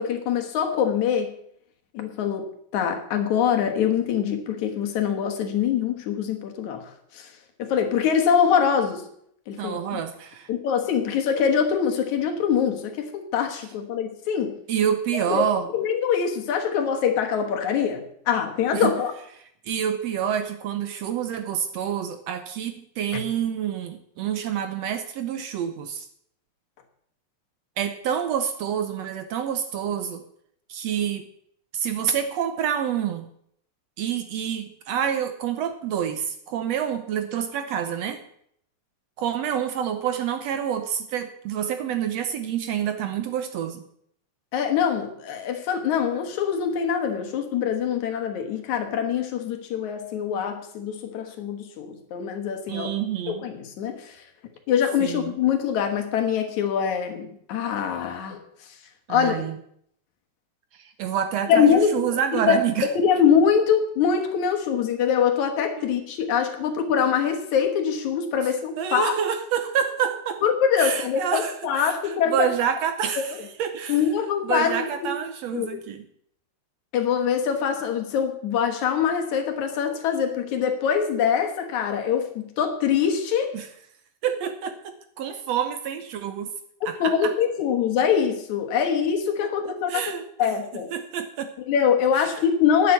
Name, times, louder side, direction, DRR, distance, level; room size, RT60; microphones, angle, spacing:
voice 1, 0.0-1.3 1.9-7.3 7.6-9.1 9.5-10.0 10.5-14.6 15.1-15.4 15.7-19.1 23.1-23.2 44.5-52.9 53.3-54.2 54.7-58.4 59.1-59.4 61.5-62.1 62.3-69.2 70.4-72.5 73.3-73.4 73.9-75.1 75.5-75.8 76.9-83.6 87.0-90.0 90.4-90.9 91.7-92.9, left 7 dB, 70° left, 5 dB, 2.7 m, -24 dB
voice 2, 9.6-10.5 14.7-15.7 18.7-18.9 19.7-26.1 27.8-30.2 30.7-31.3 31.7-33.3 34.0-38.2 39.2-43.8 52.7-53.4 55.0-55.3 59.1-59.6 60.8-62.9 65.8-65.9 68.8-70.4 70.8-74.0 74.4-76.0 83.5-83.7 84.2-86.5 86.9-87.3 89.9-90.2 90.9-91.5 92.2-92.3, right 9 dB, 70° right, 8 dB, 1.7 m, -27 dB
10.5 x 7.7 x 8.2 m, 0.69 s
omnidirectional pair, 3.5 m